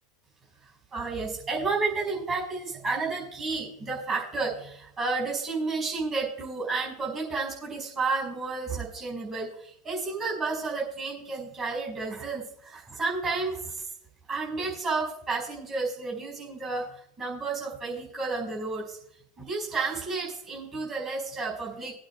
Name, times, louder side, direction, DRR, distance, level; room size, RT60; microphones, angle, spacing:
voice 1, 0.9-13.8 14.3-16.9 17.2-19.0 19.4-21.9, right 3 dB, 35° right, 0 dB, 5.0 m, -31 dB
21.0 x 8.9 x 2.3 m, 0.70 s
supercardioid pair, 115°, 0 cm